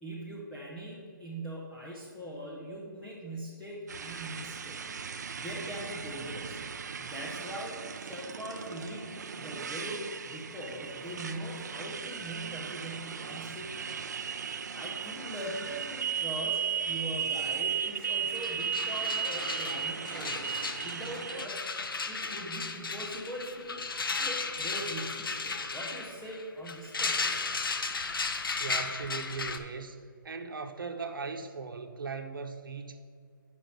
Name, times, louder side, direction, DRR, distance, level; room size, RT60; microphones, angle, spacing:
voice 1, 0.0-4.8 5.1-6.6 7.0-9.1 9.4-13.9 14.3-21.6 22.1-23.9 24.3-27.2, right 1 dB, 5° left, -6 dB, 0.5 m, -41 dB
Motorcycle, 3.9-21.5, right 7 dB, 50° right, 0.4 m, -36 dB
sound 1, 18.0-18.1 18.3-29.6, left 4 dB, 80° left, 0.8 m, -35 dB
voice 2, 28.6-30.0 30.2-33.0, right 4 dB, 70° right, 5 dB, 0.9 m, -38 dB
7.8 x 5.8 x 5.3 m, 2.2 s
hypercardioid pair, 170°, 12 cm